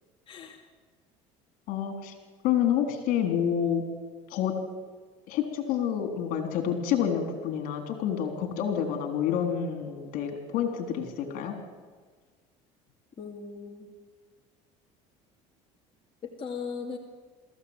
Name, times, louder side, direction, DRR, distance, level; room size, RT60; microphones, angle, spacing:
voice 1, 0.3-0.7 13.2-13.9 16.2-17.0, left 5 dB, 35° left, 1 dB, 2.5 m, -38 dB
voice 2, 1.7-2.1 2.4-3.8 4.3-4.5 5.3-11.5, left 9 dB, 65° left, 6 dB, 3.7 m, -28 dB
22.0 x 15.0 x 9.0 m, 1.5 s
supercardioid pair, 95°, 15 cm